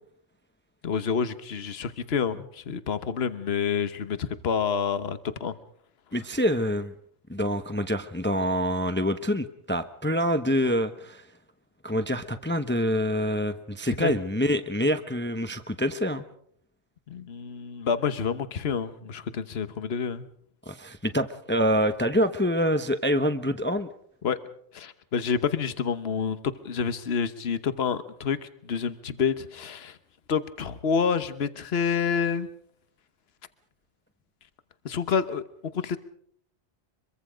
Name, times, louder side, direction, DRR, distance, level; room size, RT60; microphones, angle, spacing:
voice 1, 0.8-5.5 14.0-14.2 17.1-20.3 24.2-24.4 24.7-26.4 26.6-30.0 30.3-32.5 34.8-35.4 35.7-36.0, left 6 dB, 65° left, 12 dB, 1.3 m, -28 dB
voice 2, 6.1-6.9 7.3-11.2 11.8-16.2 20.7-23.9, equal, 10° left, 8 dB, 0.9 m, -26 dB
24.5 x 23.0 x 5.1 m, 0.66 s
omnidirectional pair, 1.1 m